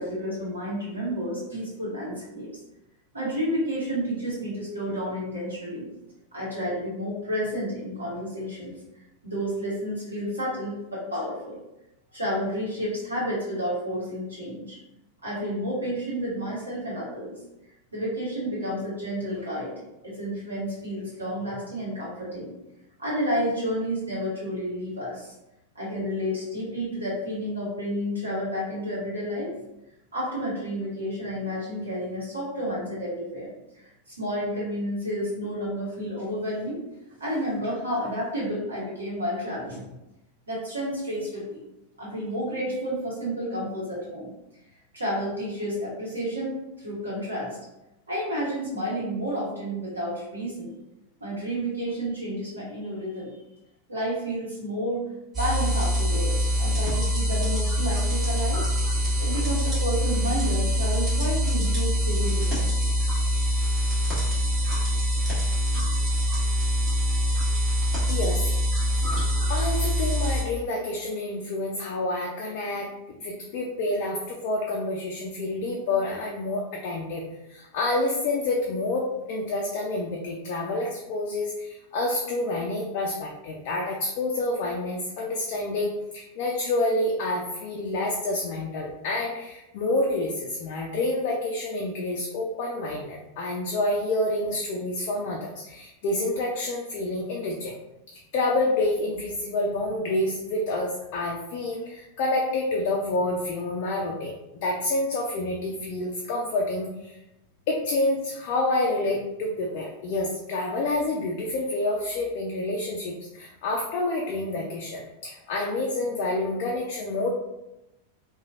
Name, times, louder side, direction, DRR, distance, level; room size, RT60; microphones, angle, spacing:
voice 1, 0.0-2.5 3.1-5.9 6.3-8.7 9.2-11.6 12.1-14.8 15.2-17.3 17.9-19.7 20.0-22.5 23.0-25.3 25.7-29.5 30.1-33.5 34.2-36.8 37.2-39.9 40.5-41.6 42.0-44.3 44.9-47.6 48.1-50.7 51.2-53.3 53.9-55.0 55.3-58.6 59.2-62.7, equal, 75° right, -7 dB, 1.0 m, -30 dB
sound 1, 55.3-70.4, equal, 25° right, 1.5 m, -24 dB
voice 2, 68.1-68.5 69.0-77.2 77.5-97.7 98.3-104.3 104.6-107.2 107.7-117.3, left 2 dB, 45° left, -1 dB, 0.4 m, -28 dB
3.0 x 2.2 x 2.4 m, 0.91 s
figure-of-eight pair, 90°, 0 cm